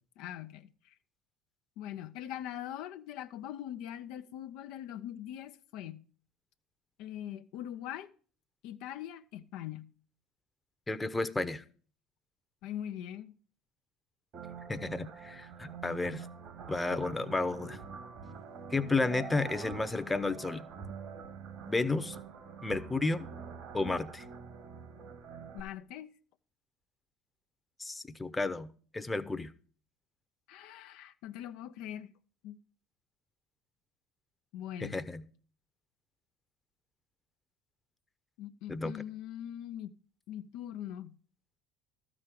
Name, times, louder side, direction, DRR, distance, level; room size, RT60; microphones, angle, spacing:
voice 1, 0.2-1.0 1.8-6.1 7.0-8.1 8.6-9.9 12.6-13.4 25.5-26.1 30.5-32.1 32.4-32.6 34.5-35.0 38.4-40.0 40.3-41.2, left 11 dB, 65° left, 0.5 m, -42 dB
voice 2, 10.9-11.6 14.7-16.3 16.7-17.8 18.7-20.6 21.6-22.2 22.6-23.3 23.7-24.2 27.8-29.5 34.8-35.2 38.7-39.0, left 3 dB, 15° left, 0.8 m, -32 dB
sound 1, 14.3-25.6, right 6 dB, 60° right, 1.7 m, -45 dB
13.0 x 5.0 x 7.6 m
hypercardioid pair, 75°, 0 cm